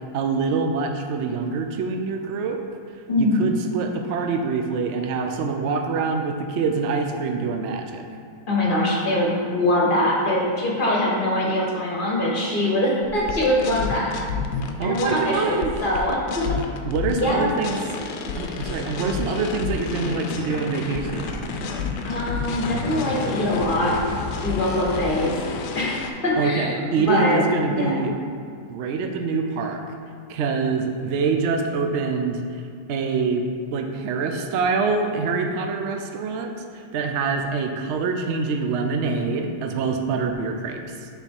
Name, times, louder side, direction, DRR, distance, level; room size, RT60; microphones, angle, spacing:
voice 1, 0.1-2.6 3.2-8.0 14.8-15.8 16.9-17.8 18.4-21.5 26.4-28.1 28.7-29.8 30.3-32.6 32.9-33.4 33.7-41.1, right 4 dB, 75° right, 4 dB, 0.6 m, -25 dB
voice 2, 8.5-14.1 14.8-16.5 17.1-17.6 22.1-24.0 24.4-25.3 25.7-26.7 27.0-28.0, left 1 dB, 40° left, -3 dB, 0.8 m, -23 dB
sound 1, 13.0-26.1, left 5 dB, 85° left, 1.1 m, -30 dB
6.8 x 3.5 x 4.4 m, 2.2 s
omnidirectional pair, 1.7 m